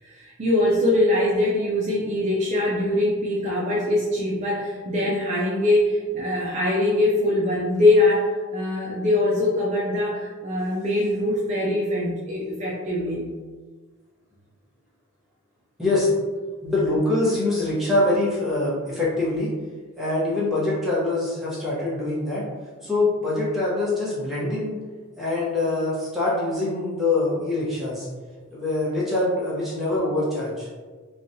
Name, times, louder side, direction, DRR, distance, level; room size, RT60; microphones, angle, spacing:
voice 1, 0.0-13.3, left 1 dB, 30° right, -5 dB, 0.3 m, -22 dB
voice 2, 16.6-19.5 20.0-22.5 22.8-24.7 25.2-28.1 28.5-30.7, left 2 dB, ahead, -9 dB, 0.7 m, -24 dB
3.0 x 2.2 x 2.6 m, 1.4 s
head